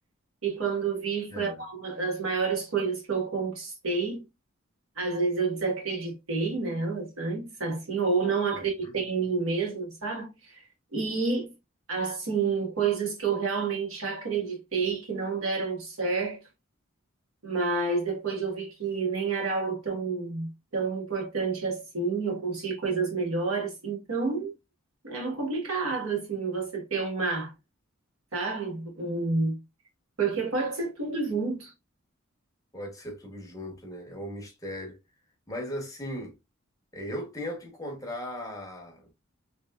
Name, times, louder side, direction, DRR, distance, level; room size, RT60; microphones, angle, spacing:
voice 1, 0.4-4.2 5.0-10.6 10.9-11.5 11.9-16.4 17.4-24.5 25.0-27.5 28.3-29.6 30.2-31.7, right 4 dB, 85° right, 1.3 m, -29 dB
voice 2, 1.3-1.6 8.5-8.9 32.7-35.0 35.5-36.3 36.9-39.1, equal, 15° left, 0.9 m, -38 dB
3.0 x 3.0 x 2.2 m
head